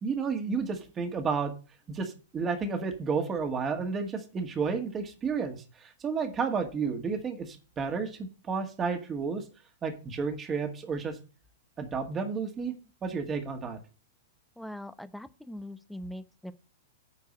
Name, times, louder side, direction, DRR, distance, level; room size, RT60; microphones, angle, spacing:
voice 1, 0.0-1.5 1.9-9.4 9.8-11.2 11.8-12.7 13.0-13.8, right 5 dB, 25° right, 5 dB, 1.8 m, -31 dB
voice 2, 14.6-16.5, left 1 dB, ahead, 12 dB, 0.7 m, -41 dB
9.6 x 4.6 x 7.4 m, 0.34 s
figure-of-eight pair, 105°, 0 cm